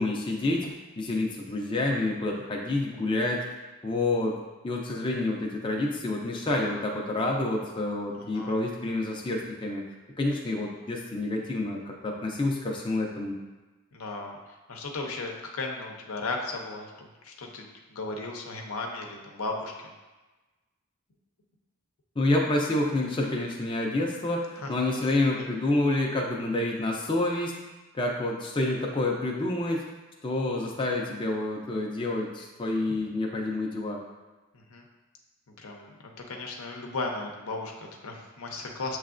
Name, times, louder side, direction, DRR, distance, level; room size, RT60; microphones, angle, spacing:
voice 1, 0.0-3.4 3.8-4.4 4.6-9.9 10.2-13.4 22.2-27.5 27.9-29.9 30.2-34.0, left 2 dB, 25° left, -1 dB, 0.4 m, -28 dB
voice 2, 8.1-8.5 13.9-14.4 14.7-19.7 24.6-24.7 25.4-25.5 34.5-34.8 35.6-39.0, left 3 dB, 85° left, 1 dB, 0.7 m, -36 dB
6.7 x 3.1 x 2.5 m, 1.2 s
head